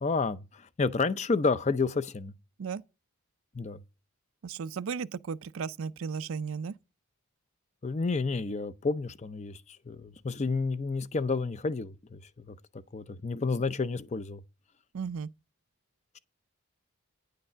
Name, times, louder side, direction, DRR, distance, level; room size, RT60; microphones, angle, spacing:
voice 1, 0.0-2.3 3.5-3.8 7.8-9.6 9.9-12.2 12.5-12.6 12.9-14.4, left 4 dB, 30° left, 0.5 m, -30 dB
voice 2, 4.4-6.7 14.9-15.3, right 6 dB, 65° right, 0.4 m, -35 dB
9.6 x 6.6 x 5.6 m
head